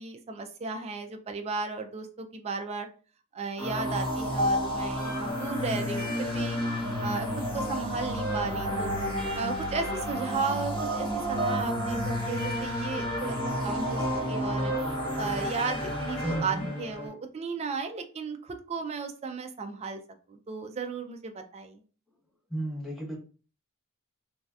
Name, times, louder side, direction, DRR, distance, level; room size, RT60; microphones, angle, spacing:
voice 1, 0.0-2.9 3.3-8.9 9.4-13.4 13.6-14.7 15.2-20.0 20.3-21.8, right 4 dB, 30° right, 5 dB, 0.4 m, -35 dB
sound 1, 3.6-17.1, equal, 20° left, 1.1 m, -30 dB
voice 2, 16.2-16.7 22.5-23.2, right 1 dB, ahead, -3 dB, 0.8 m, -33 dB
3.1 x 2.6 x 2.3 m, 0.38 s
head